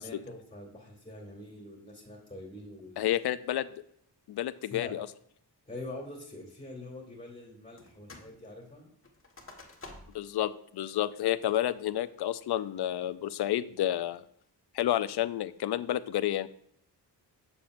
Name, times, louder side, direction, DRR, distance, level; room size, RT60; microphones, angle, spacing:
voice 1, 0.0-3.1 4.6-4.9 5.7-8.9, left 2 dB, 10° left, 0 dB, 2.3 m, -44 dB
voice 2, 3.0-3.7 4.3-5.1 10.1-14.2 14.7-16.5, left 12 dB, 65° left, 15 dB, 0.5 m, -30 dB
sound 1, 7.8-8.3 8.6-10.3 10.8-10.9 11.4-11.8 12.3-12.7, left 2 dB, 30° left, 1.5 m, -50 dB
7.1 x 6.9 x 2.5 m, 0.69 s
cardioid pair, 75°, 42 cm